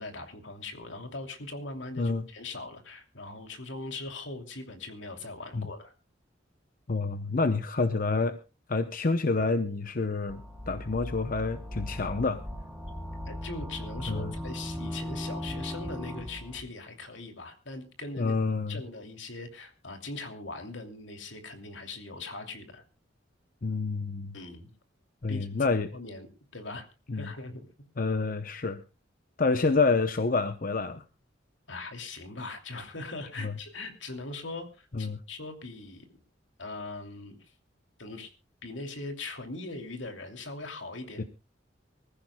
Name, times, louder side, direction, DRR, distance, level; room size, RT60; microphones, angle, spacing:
voice 1, 0.0-5.9 13.3-18.3 18.7-22.8 24.3-24.7 25.3-26.3 26.5-26.9 27.1-27.6 31.7-36.1 36.6-37.5 38.0-38.3 38.6-41.2, left 2 dB, 75° left, 6 dB, 2.9 m, -40 dB
voice 2, 2.0-2.3 5.5-5.7 6.9-8.4 8.7-12.4 14.1-14.3 18.2-18.8 23.6-24.3 25.2-25.9 27.1-27.3 28.0-28.8 29.4-31.0 33.4-33.5 34.9-35.2 41.2-41.3, left 3 dB, 45° left, 10 dB, 0.8 m, -28 dB
sound 1, 10.3-16.6, equal, ahead, 2.5 m, -38 dB
24.5 x 15.0 x 2.3 m, 0.31 s
head